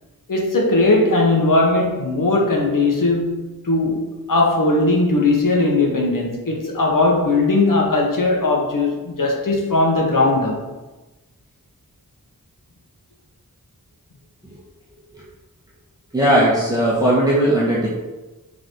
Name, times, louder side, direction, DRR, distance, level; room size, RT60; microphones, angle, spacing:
voice 1, 0.3-3.4 3.6-4.0 4.3-10.6, left 2 dB, 70° left, -1 dB, 1.6 m, -18 dB
voice 2, 16.1-17.9, right 1 dB, 10° right, -8 dB, 1.7 m, -17 dB
7.6 x 4.1 x 4.8 m, 1.1 s
wide cardioid pair, 100°, 34 cm